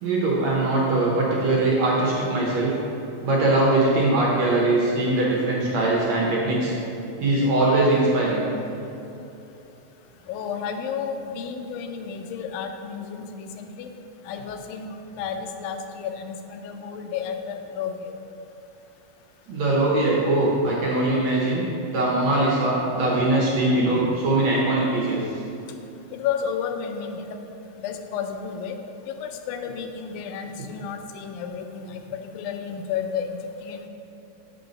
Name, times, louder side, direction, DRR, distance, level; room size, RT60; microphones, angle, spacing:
voice 1, 0.0-2.7 3.2-6.7 7.2-8.5 19.5-21.6 21.9-25.3, right 2 dB, 65° right, -4 dB, 1.8 m, -21 dB
voice 2, 10.3-13.9 14.3-18.1 26.1-27.4 27.8-28.8 29.1-33.9, left 7 dB, 85° left, 6 dB, 2.4 m, -32 dB
7.7 x 5.3 x 5.2 m, 2.8 s
omnidirectional pair, 4.0 m